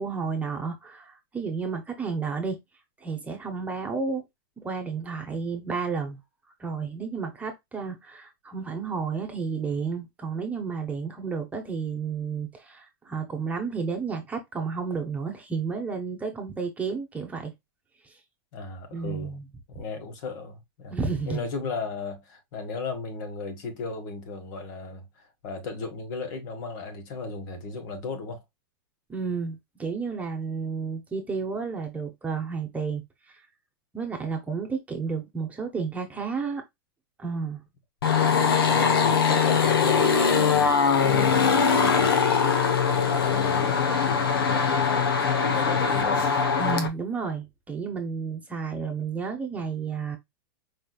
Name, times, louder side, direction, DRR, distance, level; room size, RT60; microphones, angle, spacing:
voice 1, 0.0-2.6 3.0-4.2 4.6-6.2 6.6-17.5 18.9-19.4 20.9-21.4 29.1-33.0 33.9-36.6 37.2-37.6 46.6-50.2, right 5 dB, 10° right, 1.0 m, -31 dB
voice 2, 18.5-19.4 19.7-21.0 21.2-28.4 38.6-46.3, left 3 dB, 55° left, 1.7 m, -35 dB
sound 1, 38.0-46.9, left 6 dB, 85° left, 1.2 m, -22 dB
4.9 x 3.2 x 2.4 m
hypercardioid pair, 135°, 12 cm